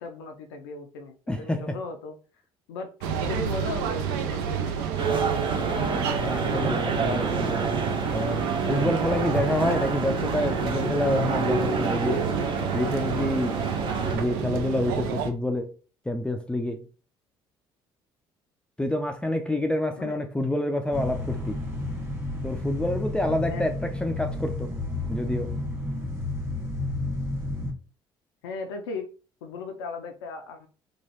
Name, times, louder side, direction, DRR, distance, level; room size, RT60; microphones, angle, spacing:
voice 1, 0.0-2.2 2.7-4.9 19.9-20.2 23.5-23.7 28.4-29.1 29.4-30.7, left 3 dB, 85° left, 0.4 m, -37 dB
voice 2, 1.3-1.7 6.2-7.6 8.1-12.3 12.7-13.6 14.1-15.7 16.1-16.8 18.8-21.6 22.4-24.7 25.1-25.6, left 1 dB, 10° left, 0.4 m, -28 dB
sound 1, 3.0-15.3, right 7 dB, 80° right, 0.4 m, -29 dB
sound 2, 5.0-14.2, right 4 dB, 45° right, 0.7 m, -29 dB
sound 3, 20.9-27.7, left 2 dB, 20° right, 1.6 m, -31 dB
3.0 x 2.3 x 2.9 m
hypercardioid pair, 60°, 12 cm